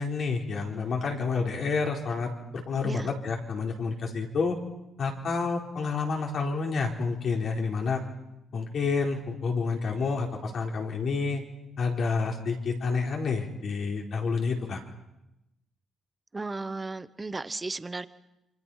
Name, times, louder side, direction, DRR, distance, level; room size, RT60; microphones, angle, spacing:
voice 1, 0.0-4.6 5.0-8.0 8.5-11.4 11.8-14.8, left 4 dB, 60° left, 1 dB, 4.3 m, -29 dB
voice 2, 16.3-18.1, right 3 dB, 20° right, 14 dB, 1.1 m, -35 dB
28.5 x 24.5 x 5.7 m, 0.92 s
cardioid pair, 90°, 0 cm